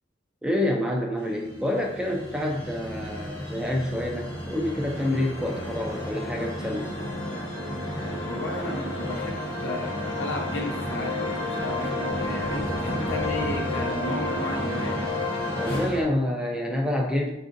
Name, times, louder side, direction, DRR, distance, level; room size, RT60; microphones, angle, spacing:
voice 1, 0.4-6.9 15.5-17.3, left 1 dB, 5° right, 0 dB, 0.4 m, -27 dB
sound 1, 1.3-16.0, left 1 dB, 30° left, 0.9 m, -31 dB
voice 2, 8.3-11.1 11.4-15.2, left 1 dB, 75° left, 1 dB, 0.7 m, -34 dB
4.6 x 2.5 x 2.5 m, 0.85 s
head